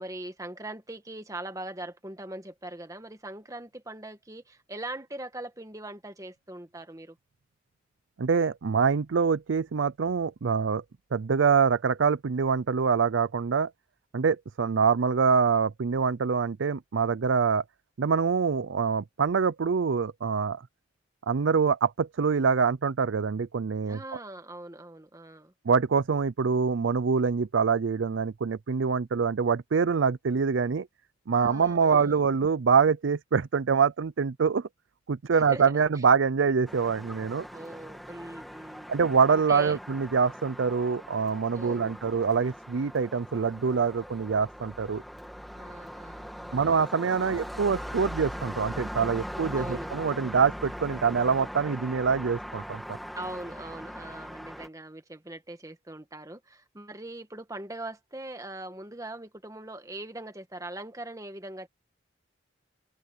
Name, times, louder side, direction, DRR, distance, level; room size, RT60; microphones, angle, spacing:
voice 1, 0.0-7.2 23.9-25.5 31.3-32.3 35.3-36.0 37.5-38.9 39.3-39.8 41.5-42.0 45.5-46.6 47.1-47.3 49.5-49.9 53.1-61.7, right 1 dB, 15° right, 1.6 m, -41 dB
voice 2, 8.2-10.8 11.1-13.7 14.1-17.6 18.0-20.6 21.3-24.0 25.7-30.9 31.3-34.7 35.1-37.5 38.9-45.0 46.5-53.0, right 5 dB, 80° right, 0.5 m, -25 dB
sound 1, 36.7-54.7, equal, ahead, 2.1 m, -40 dB
head